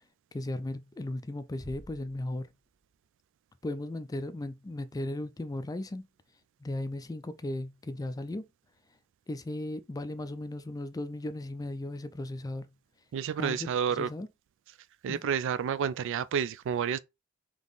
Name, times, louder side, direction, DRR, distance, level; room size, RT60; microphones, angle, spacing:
voice 1, 0.3-2.5 3.6-6.0 6.6-8.4 9.3-12.7 13.4-14.3 15.1-15.2, left 1 dB, 15° left, 0.4 m, -36 dB
sound 1, 1.6-3.5, equal, 10° right, 1.3 m, -53 dB
voice 2, 13.1-14.1 15.0-17.0, right 7 dB, 65° right, 0.3 m, -30 dB
3.6 x 3.0 x 3.9 m
head